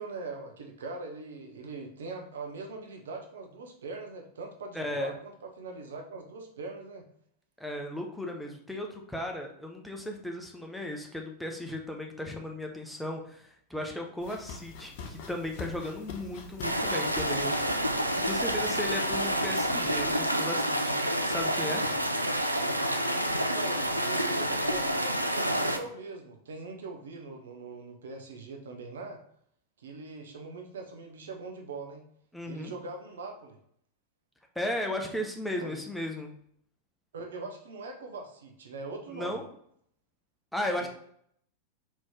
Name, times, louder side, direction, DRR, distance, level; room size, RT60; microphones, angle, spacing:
voice 1, 0.0-7.0 23.3-29.2 29.8-32.0 32.4-33.6 35.6-35.8 37.1-39.4 40.8-40.9, right 3 dB, 65° right, 2 dB, 0.8 m, -41 dB
voice 2, 4.7-5.1 7.6-17.6 18.2-21.9 32.3-32.7 34.6-36.3 39.1-39.5 40.5-40.9, left 1 dB, ahead, 1 dB, 0.7 m, -35 dB
sound 1, 14.2-20.2, left 5 dB, 50° left, 0.6 m, -45 dB
sound 2, 16.6-25.8, equal, 90° right, 0.4 m, -28 dB
4.2 x 3.0 x 3.5 m, 0.67 s
figure-of-eight pair, 90°, 0 cm